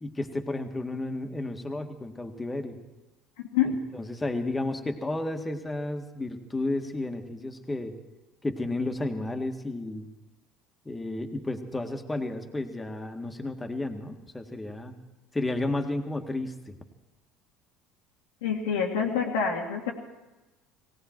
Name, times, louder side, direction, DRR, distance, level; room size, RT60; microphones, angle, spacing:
voice 1, 0.0-2.8 3.7-8.0 8.4-10.1 10.9-14.9 15.3-16.8, left 2 dB, 15° left, 5 dB, 1.8 m, -32 dB
voice 2, 18.4-19.9, left 7 dB, 80° left, -4 dB, 1.7 m, -26 dB
18.0 x 17.5 x 4.5 m, 1.1 s
hypercardioid pair, 70°, 0 cm